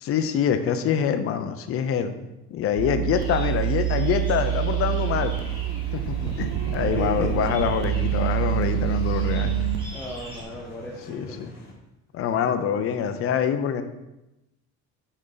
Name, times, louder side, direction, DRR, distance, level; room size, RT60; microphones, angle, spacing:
voice 1, 0.0-2.1 2.5-5.3 5.9-9.6 11.1-11.5 12.1-13.8, left 8 dB, 45° left, 8 dB, 0.6 m, -25 dB
sound 1, 2.8-9.9, right 11 dB, 80° right, 0.5 m, -26 dB
sound 2, 3.1-10.4, equal, 15° right, 2.0 m, -42 dB
sound 3, 5.1-11.7, left 1 dB, 30° left, 1.7 m, -46 dB
voice 2, 7.0-7.6 9.9-11.4, left 1 dB, 5° left, -2 dB, 0.7 m, -36 dB
6.2 x 5.2 x 3.9 m, 0.95 s
cardioid pair, 145°, 31 cm